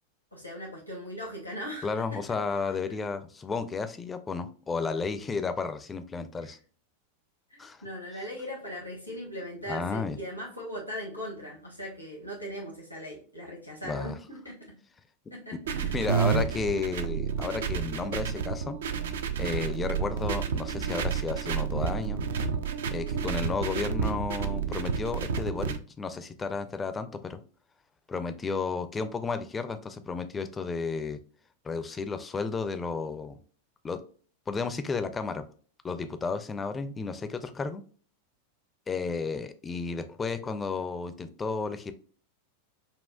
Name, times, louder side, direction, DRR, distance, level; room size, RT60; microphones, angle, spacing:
voice 1, 0.3-2.2 6.4-6.5 7.5-14.6 15.3-16.0, equal, 90° left, -3 dB, 1.2 m, -39 dB
voice 2, 1.8-6.6 7.6-7.8 9.7-10.2 13.8-14.2 15.5-18.8 19.4-22.2 22.9-27.4 28.1-31.2 31.6-33.3 33.8-34.0 34.5-35.4 35.8-37.8 38.9-41.9, left 4 dB, 15° left, 10 dB, 0.4 m, -33 dB
sound 1, 15.7-25.8, right 6 dB, 60° right, 0.4 m, -30 dB
5.5 x 2.3 x 2.2 m, 0.43 s
figure-of-eight pair, 90°, 0 cm